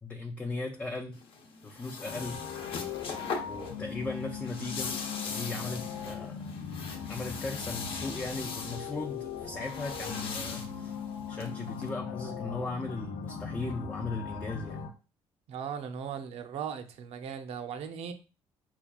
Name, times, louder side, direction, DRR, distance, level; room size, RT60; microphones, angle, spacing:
voice 1, 0.0-1.2 1.6-2.4 3.5-4.9 5.3-6.4 7.1-11.0 11.3-14.9, left 3 dB, 15° left, 0.3 m, -37 dB
sound 1, 1.1-11.9, left 4 dB, 55° left, 0.7 m, -41 dB
sound 2, 2.0-14.9, left 7 dB, 90° left, 0.6 m, -39 dB
voice 2, 15.5-18.1, right 7 dB, 65° right, 0.5 m, -38 dB
5.6 x 2.3 x 2.3 m
cardioid pair, 145°, 11 cm